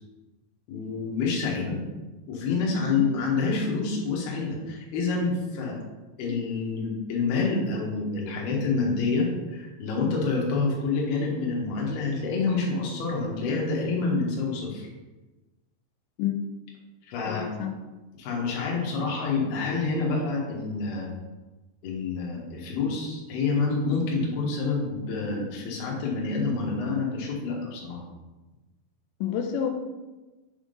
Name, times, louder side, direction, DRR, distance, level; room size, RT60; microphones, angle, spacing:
voice 1, 0.7-1.8 2.3-5.8 6.2-14.8 17.1-17.5 18.2-21.1 21.8-28.0, left 4 dB, 65° left, -2 dB, 3.1 m, -27 dB
voice 2, 17.2-17.7 29.2-29.7, left 9 dB, 90° left, 4 dB, 2.8 m, -28 dB
7.1 x 3.7 x 5.2 m, 1.1 s
omnidirectional pair, 5.0 m